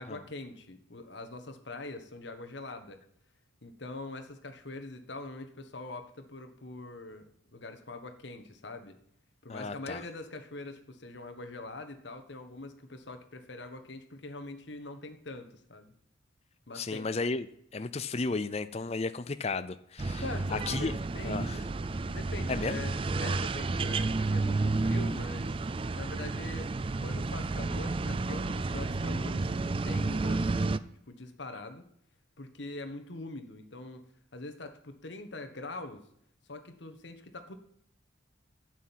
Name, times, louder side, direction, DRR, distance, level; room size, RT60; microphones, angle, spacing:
voice 1, 0.0-3.0 3.6-9.0 9.4-15.9 16.7-17.1 20.2-21.8 22.1-25.5 25.9-30.7 31.1-31.8 32.4-34.0 34.3-36.0 36.5-37.5, left 2 dB, 65° left, 7 dB, 1.4 m, -43 dB
voice 2, 9.5-10.0 16.7-17.5 17.7-20.2 20.5-20.9 21.2-21.6 22.5-22.8, left 3 dB, 30° left, 12 dB, 0.5 m, -33 dB
sound 1, 20.0-30.8, right 3 dB, 25° right, 0.4 m, -31 dB
11.5 x 6.2 x 9.1 m, 0.70 s
head